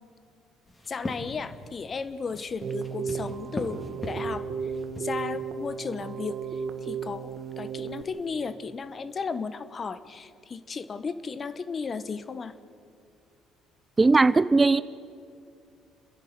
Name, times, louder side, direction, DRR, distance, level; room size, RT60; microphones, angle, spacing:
sound 1, 0.6-8.3, left 1 dB, 20° left, 3.6 m, -42 dB
voice 1, 0.9-4.7 5.0-7.3 7.6-12.5, left 5 dB, 40° left, 13 dB, 1.2 m, -35 dB
Keyboard (musical), 2.6-8.0, right 6 dB, 55° right, 1.2 m, -34 dB
voice 2, 14.0-14.8, right 3 dB, 25° right, 16 dB, 0.6 m, -19 dB
29.5 x 10.5 x 9.4 m, 2.4 s
hypercardioid pair, 60°, 0 cm